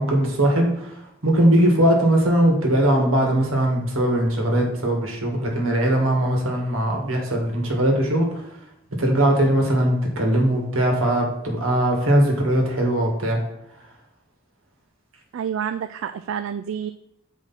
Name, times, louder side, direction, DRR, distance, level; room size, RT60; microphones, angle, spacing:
voice 1, 0.0-8.5 9.0-13.4, right 1 dB, 85° right, 1 dB, 1.9 m, -20 dB
voice 2, 15.3-16.9, right 8 dB, 70° right, 10 dB, 0.3 m, -28 dB
7.6 x 4.9 x 4.2 m, 0.78 s
head